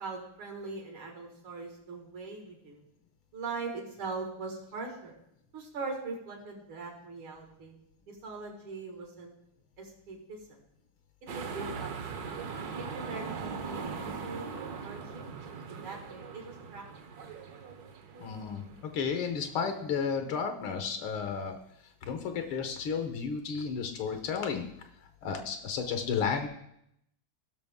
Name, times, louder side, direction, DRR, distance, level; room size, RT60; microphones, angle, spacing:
voice 1, 0.0-2.8 3.3-5.2 5.5-7.7 8.1-9.3 9.8-10.6 11.3-12.3 12.8-15.2 15.7-16.8 17.1-17.2, right 4 dB, 80° right, 1 dB, 2.6 m, -41 dB
sound 1, 11.3-19.7, right 5 dB, 55° right, 1.2 m, -40 dB
voice 2, 18.2-21.6 22.1-24.7 25.2-26.5, left 6 dB, 80° left, 6 dB, 1.8 m, -32 dB
16.0 x 6.1 x 3.6 m, 0.76 s
omnidirectional pair, 2.3 m